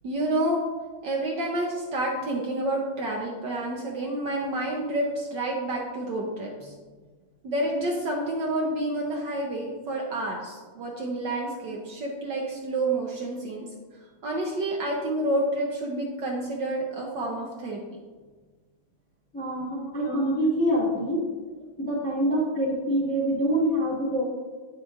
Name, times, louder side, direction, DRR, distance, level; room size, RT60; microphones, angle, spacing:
voice 1, 0.0-0.6 1.0-6.7 7.4-13.7 14.2-18.0 19.9-20.3, right 1 dB, 65° right, -1 dB, 1.2 m, -29 dB
voice 2, 19.3-21.2 21.8-24.3, equal, 5° left, -4 dB, 1.2 m, -25 dB
9.0 x 6.0 x 2.5 m, 1.4 s
omnidirectional pair, 2.3 m